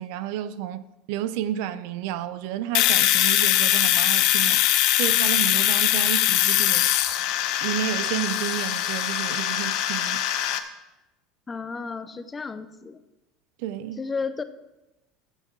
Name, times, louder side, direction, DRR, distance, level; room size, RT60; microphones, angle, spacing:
voice 1, 0.0-4.6 4.9-6.9 7.6-10.2 13.6-14.0, right 11 dB, 70° right, 0.6 m, -31 dB
Domestic sounds home sounds, 2.7-10.6, left 13 dB, 60° left, 0.8 m, -22 dB
voice 2, 11.5-13.0 14.0-14.4, left 4 dB, 15° left, 0.6 m, -32 dB
13.0 x 8.1 x 4.5 m
supercardioid pair, 140°, 0 cm